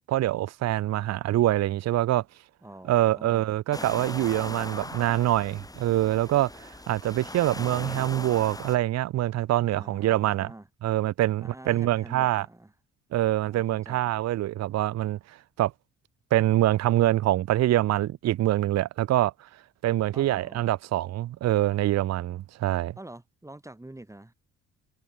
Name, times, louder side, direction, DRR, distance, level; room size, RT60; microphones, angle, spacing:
voice 1, 0.1-2.2 2.9-10.5 10.8-12.5 13.1-15.2 15.6-15.7 16.3-19.3 19.8-22.9, right 14 dB, 60° right, 0.6 m, -25 dB
voice 2, 2.6-3.6 9.7-10.7 11.4-12.7 13.4-14.1 20.1-20.6 23.0-24.3, right 1 dB, 10° right, 2.0 m, -46 dB
sound 1, 3.7-8.8, left 2 dB, 10° left, 2.3 m, -39 dB
cardioid pair, 90°, 30 cm